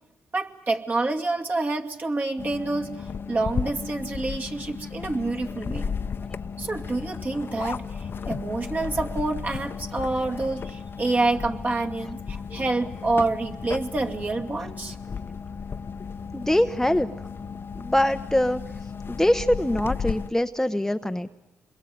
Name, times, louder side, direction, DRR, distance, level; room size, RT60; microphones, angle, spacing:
voice 1, 0.3-5.9 6.6-14.9, right 3 dB, 35° right, 2 dB, 2.5 m, -27 dB
sound 1, 2.4-20.3, left 6 dB, 50° left, 0.9 m, -34 dB
voice 2, 16.3-17.1 17.8-18.6 19.1-21.3, left 1 dB, 10° left, 8 dB, 0.9 m, -23 dB
26.5 x 22.0 x 9.4 m, 0.96 s
supercardioid pair, 65°, 5 cm